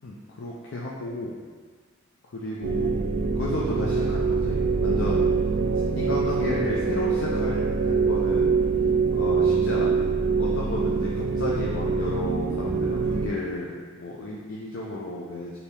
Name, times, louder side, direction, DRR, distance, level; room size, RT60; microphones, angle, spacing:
voice 1, 0.0-1.3 2.3-3.0 3.4-5.3 5.7-8.5 9.1-9.9 10.4-15.6, left 2 dB, 60° left, -5 dB, 0.5 m, -33 dB
sound 1, 2.6-13.3, right 4 dB, 75° right, 0.4 m, -24 dB
4.5 x 2.8 x 3.4 m, 1.5 s
head